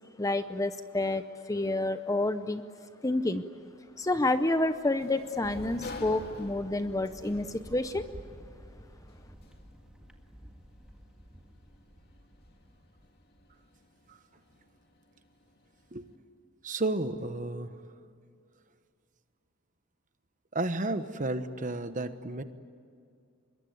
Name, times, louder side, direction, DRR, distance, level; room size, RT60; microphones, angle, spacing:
voice 1, 0.2-2.6 3.0-3.4 4.0-8.1, left 2 dB, 15° left, 10 dB, 0.6 m, -29 dB
Sliding door, 3.5-16.2, left 2 dB, 45° left, 2.4 m, -52 dB
Thunder, 5.4-13.7, equal, 5° right, 1.8 m, -50 dB
voice 2, 16.6-17.7 20.5-22.4, right 2 dB, 35° right, 10 dB, 1.1 m, -32 dB
25.5 x 22.5 x 9.5 m, 2.3 s
head